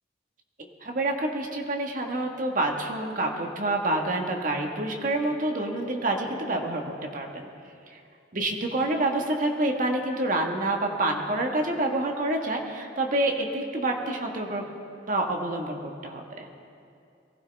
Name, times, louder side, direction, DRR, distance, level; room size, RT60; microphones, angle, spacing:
voice 1, 0.6-7.5 7.9-8.0 8.3-14.6 15.1-16.5, right 2 dB, 50° right, 2 dB, 1.5 m, -28 dB
22.5 x 15.5 x 3.5 m, 2.6 s
head